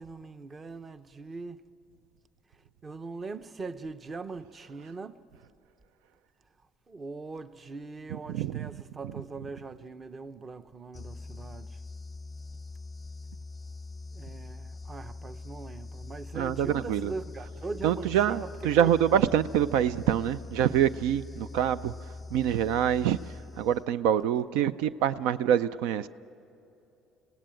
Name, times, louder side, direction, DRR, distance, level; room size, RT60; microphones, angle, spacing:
voice 1, 0.0-1.6 2.8-5.2 6.9-11.8 14.1-18.9, right 3 dB, 25° right, 0.7 m, -41 dB
voice 2, 8.3-8.7 16.3-17.1 17.8-21.9 22.3-23.2 23.6-26.1, right 10 dB, 85° right, 0.5 m, -25 dB
sound 1, 10.9-24.1, left 3 dB, 15° left, 0.6 m, -43 dB
26.0 x 17.5 x 9.0 m
cardioid pair, 125°, 0 cm